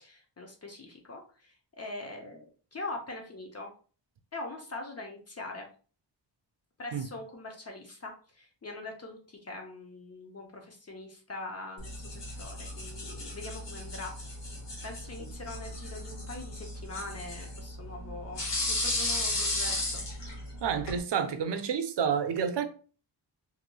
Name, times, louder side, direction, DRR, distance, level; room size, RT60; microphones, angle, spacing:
voice 1, 0.0-3.7 4.3-5.7 6.8-14.4 14.8-20.0, left 2 dB, 35° left, 0.6 m, -43 dB
sound 1, 11.8-21.0, left 2 dB, 75° left, 1.1 m, -35 dB
voice 2, 20.6-22.7, right 7 dB, 75° right, 0.5 m, -29 dB
3.1 x 2.7 x 2.2 m
wide cardioid pair, 135°, 43 cm